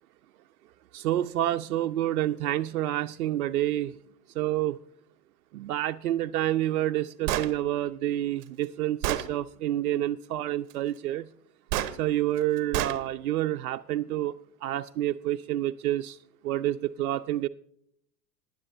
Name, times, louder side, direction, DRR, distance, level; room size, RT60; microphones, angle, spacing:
voice 1, 0.9-3.9 4.4-4.8 5.5-11.3 12.0-14.3 14.6-16.2 16.4-17.5, right 13 dB, 65° right, 0.5 m, -28 dB
Gunshot gunfire, 7.3-7.5 8.4-8.5 9.0-9.3 11.7-11.9 12.7-13.0, right 12 dB, 40° right, 0.9 m, -28 dB
19.5 x 10.0 x 2.6 m
figure-of-eight pair, 85°, 48 cm